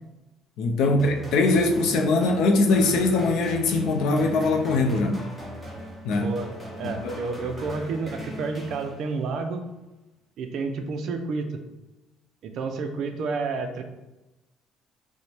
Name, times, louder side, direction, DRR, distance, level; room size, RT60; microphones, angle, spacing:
voice 1, 0.6-5.2 6.0-6.3 6.8-7.2, left 3 dB, 70° left, 4 dB, 0.5 m, -22 dB
sound 1, 1.0-9.4, equal, 5° left, 1.0 m, -40 dB
voice 2, 6.8-9.7 10.4-11.6 12.4-13.8, right 4 dB, 55° right, 6 dB, 0.5 m, -30 dB
5.1 x 2.1 x 3.3 m, 1.0 s
cardioid pair, 150°, 0 cm